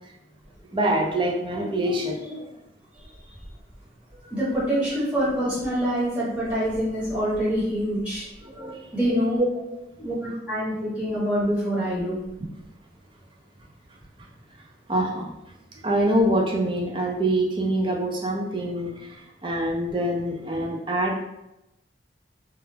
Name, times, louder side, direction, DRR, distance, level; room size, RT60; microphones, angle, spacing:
voice 1, 0.7-2.5 8.4-8.9 9.4-9.5 14.9-15.3 15.7-21.2, right 1 dB, 25° right, -1 dB, 0.4 m, -25 dB
voice 2, 4.3-8.2 8.9-9.5 10.0-12.2, equal, 5° right, -10 dB, 1.0 m, -25 dB
2.3 x 2.1 x 3.2 m, 0.91 s
head